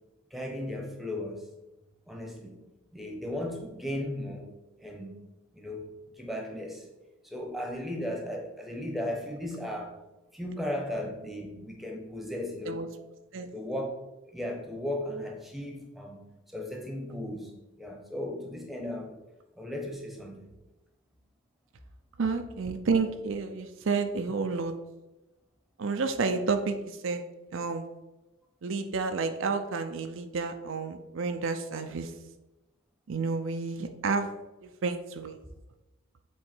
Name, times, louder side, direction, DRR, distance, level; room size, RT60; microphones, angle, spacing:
voice 1, 0.3-1.5 2.1-2.6 2.9-4.5 4.8-5.2 5.5-6.9 7.2-10.0 10.3-12.9 13.5-13.9 14.3-16.2 16.5-17.5 17.8-19.1 19.6-20.5 24.3-24.4, left 1 dB, ahead, 1 dB, 1.0 m, -36 dB
voice 2, 22.2-24.7 25.8-27.2 27.5-27.9 28.6-32.1 33.1-34.3 34.6-35.4, right 4 dB, 65° right, 7 dB, 0.5 m, -30 dB
7.7 x 3.6 x 4.4 m, 1.0 s
head